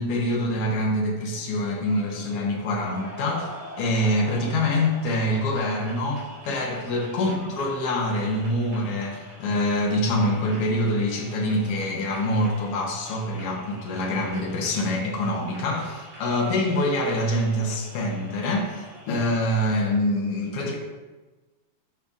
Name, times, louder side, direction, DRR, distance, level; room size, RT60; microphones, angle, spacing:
voice 1, 0.0-3.5 3.8-20.7, left 1 dB, 75° left, -1 dB, 1.4 m, -25 dB
sound 1, 1.3-19.2, equal, 70° right, 3.7 m, -45 dB
9.7 x 5.1 x 2.4 m, 1.2 s
omnidirectional pair, 3.8 m